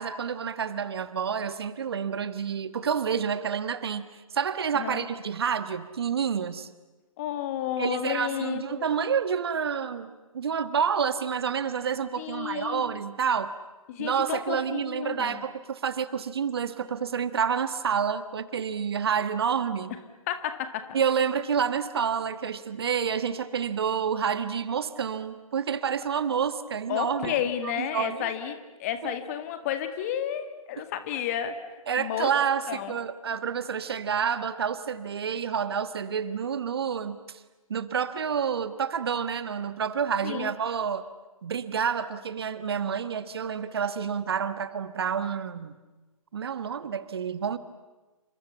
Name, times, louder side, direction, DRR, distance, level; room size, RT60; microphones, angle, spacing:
voice 1, 0.0-4.1 4.3-6.7 7.8-13.5 14.0-20.0 20.9-27.4 27.6-28.3 29.0-29.1 30.8-30.9 31.9-37.4 37.7-41.0 41.4-45.8 46.3-47.6, right 7 dB, 45° right, 12 dB, 1.5 m, -29 dB
voice 2, 4.7-5.1 7.2-8.9 12.2-12.8 13.9-15.4 20.3-20.9 26.9-31.6 32.0-32.3 32.7-33.0 40.2-40.5, left 10 dB, 25° left, 9 dB, 2.0 m, -31 dB
29.5 x 26.5 x 7.2 m, 1.2 s
figure-of-eight pair, 140°, 18 cm